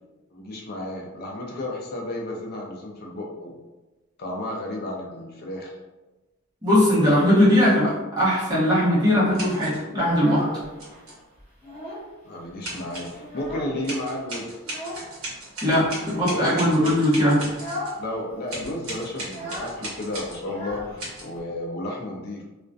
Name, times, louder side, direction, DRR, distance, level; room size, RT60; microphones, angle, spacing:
voice 1, 0.3-3.6 4.2-5.8 12.2-14.5 15.7-17.0 18.0-22.4, left 1 dB, 45° left, -1 dB, 0.4 m, -33 dB
voice 2, 6.6-10.4 15.6-17.5, equal, 20° right, -9 dB, 0.8 m, -20 dB
sound 1, 9.3-9.8 10.8-11.2 12.6-13.2 13.8-18.0 18.5-20.4 21.0-21.2, right 1 dB, 70° right, 0.9 m, -37 dB
Child speech kid speaking, 10.0-11.0 11.4-12.2 12.4-12.5 12.9-14.0 14.6-15.1 16.0-16.5 16.9-17.1 17.5-18.0 18.3-18.4 18.6-21.4, equal, 10° left, 1.1 m, -36 dB
2.3 x 2.1 x 2.5 m, 1.1 s
head